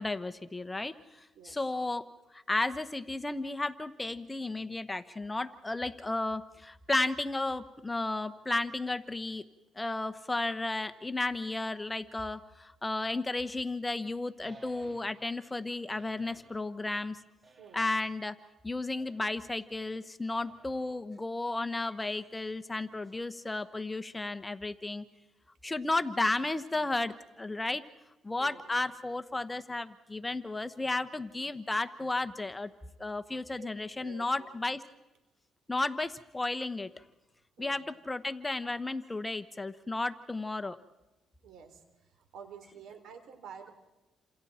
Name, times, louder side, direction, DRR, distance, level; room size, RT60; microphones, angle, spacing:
voice 1, 0.0-2.1 2.3-9.4 9.7-17.2 17.7-18.4 18.6-25.0 25.6-27.8 28.2-32.7 33.0-34.8 35.7-36.9 37.6-40.8, left 2 dB, 15° left, 11 dB, 1.1 m, -33 dB
sound 1, 14.4-15.4 15.9-16.6 17.4-18.2 18.9-19.5 20.4-21.1, right 3 dB, 30° right, 2.5 m, -57 dB
voice 2, 34.0-34.5 37.6-37.8 41.4-41.8 42.2-43.7, right 7 dB, 75° right, 6 dB, 3.9 m, -49 dB
29.0 x 27.5 x 4.4 m, 1.0 s
cardioid pair, 90°, 0 cm